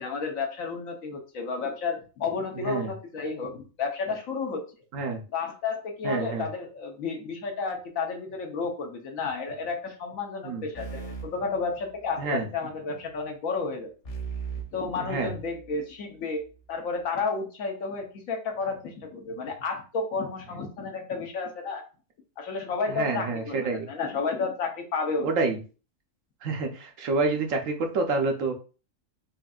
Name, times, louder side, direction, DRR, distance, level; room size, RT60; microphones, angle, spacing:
voice 1, 0.0-4.6 5.3-13.9 14.7-16.4 16.7-21.8 22.4-25.3, left 4 dB, 85° left, 3 dB, 1.3 m, -31 dB
voice 2, 2.5-2.9 4.9-5.2 6.0-6.5 10.4-10.7 12.2-12.5 15.0-15.3 22.9-23.9 25.2-25.6 26.4-28.5, right 3 dB, 75° right, 4 dB, 1.1 m, -28 dB
sound 1, 10.7-12.4 14.0-15.8, right 5 dB, 50° left, 1.3 m, -38 dB
5.1 x 2.6 x 2.3 m, 0.35 s
omnidirectional pair, 1.4 m